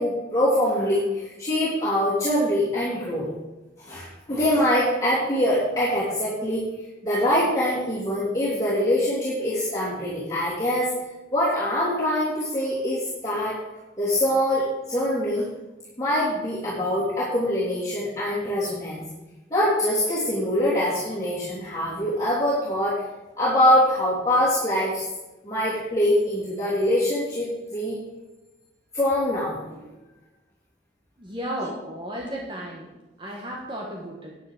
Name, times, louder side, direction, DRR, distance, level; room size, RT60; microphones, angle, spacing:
voice 1, 0.0-3.3 3.8-6.6 7.0-10.9 11.3-13.6 14.0-15.5 16.0-19.0 19.5-23.0 23.4-25.0 25.4-28.0 28.9-29.8, left 1 dB, 20° left, -10 dB, 3.2 m, -24 dB
voice 2, 31.2-32.9 33.2-34.4, equal, 30° right, -1 dB, 1.4 m, -34 dB
9.6 x 9.6 x 4.9 m, 1.1 s
head